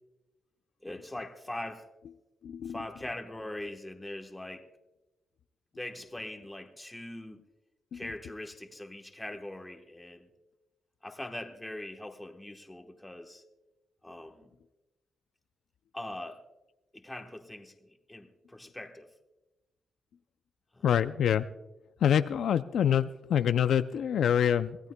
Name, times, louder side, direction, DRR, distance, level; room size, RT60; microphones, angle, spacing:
voice 1, 0.8-1.8 2.6-4.6 5.7-7.4 7.9-10.3 11.0-13.4 14.0-14.5 15.9-16.4 16.9-19.1 20.7-20.9, left 1 dB, 10° left, 4 dB, 1.1 m, -42 dB
voice 2, 2.4-2.8 7.9-8.0 20.8-21.5 22.0-24.8, left 9 dB, 65° left, 12 dB, 0.4 m, -26 dB
25.0 x 16.5 x 2.2 m, 1.0 s
wide cardioid pair, 165°, 0 cm